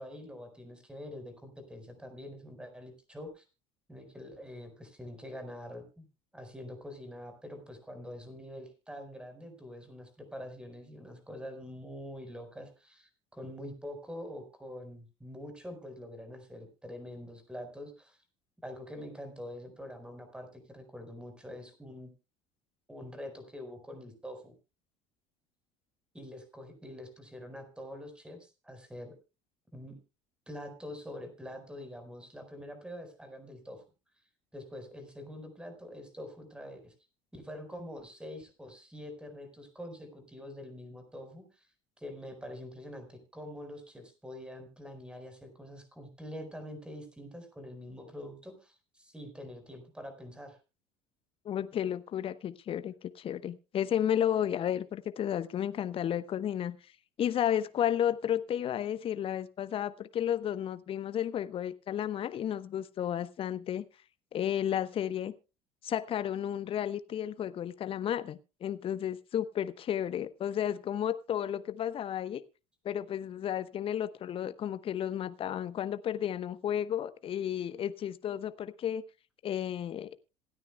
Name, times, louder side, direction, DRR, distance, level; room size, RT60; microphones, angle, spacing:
voice 1, 0.0-3.4 3.9-6.1 6.3-18.2 18.6-22.1 22.9-24.5 26.1-29.1 29.7-29.9 30.5-33.8 34.5-36.9 37.3-41.7 42.0-50.6, left 1 dB, 5° right, 7 dB, 4.6 m, -45 dB
voice 2, 51.4-56.8 57.2-63.8 64.3-65.3 65.8-72.4 72.8-79.0 79.4-80.1, left 10 dB, 40° left, 14 dB, 1.0 m, -32 dB
27.0 x 9.5 x 2.3 m, 0.29 s
figure-of-eight pair, 65°, 15 cm